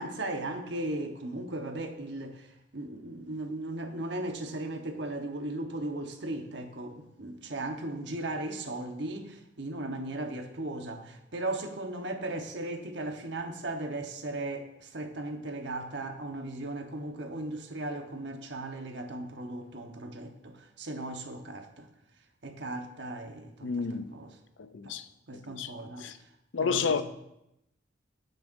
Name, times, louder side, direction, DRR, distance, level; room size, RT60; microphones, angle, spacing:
voice 1, 0.0-2.5 2.7-21.9 22.4-23.8 24.1-24.3 24.8-25.0 25.3-26.1 26.6-27.0, right 2 dB, 65° right, 1.1 m, -37 dB
voice 2, 23.6-24.2 24.6-25.1 25.5-25.7 26.0-26.2 26.5-27.0, left 5 dB, 80° left, 0.6 m, -30 dB
17.0 x 6.8 x 2.6 m
head